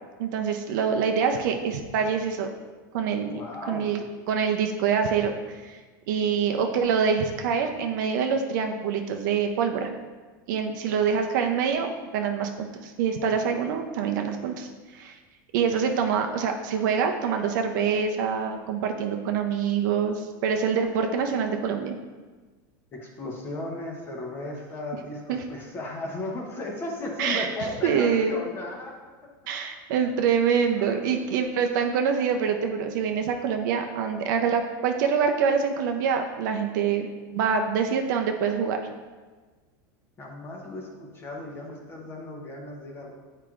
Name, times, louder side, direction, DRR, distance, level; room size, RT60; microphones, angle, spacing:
voice 1, 0.2-2.5 2.9-3.4 3.7-4.0 4.3-5.8 6.1-9.9 10.5-15.2 15.5-22.0 25.3-25.4 27.2-27.5 27.8-28.4 29.5-38.8, right 6 dB, 70° right, 4 dB, 0.5 m, -25 dB
voice 2, 3.1-4.1 22.9-29.0 30.8-31.0 40.2-43.2, left 2 dB, 20° left, 0 dB, 0.8 m, -36 dB
8.5 x 4.5 x 2.5 m, 1.3 s
supercardioid pair, 155°, 11 cm